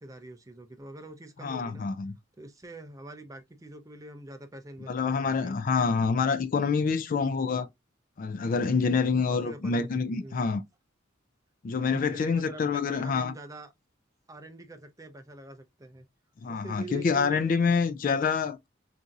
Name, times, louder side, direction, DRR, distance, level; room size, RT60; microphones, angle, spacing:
voice 1, 0.0-1.9 2.4-5.5 8.8-8.9 9.3-10.5 11.9-13.7 14.3-16.1 16.5-17.6, right 2 dB, 15° right, 0.5 m, -45 dB
voice 2, 1.4-2.1 4.9-7.7 8.2-10.6 11.6-13.3 16.4-18.7, left 5 dB, 40° left, 0.3 m, -27 dB
4.1 x 2.6 x 2.3 m
head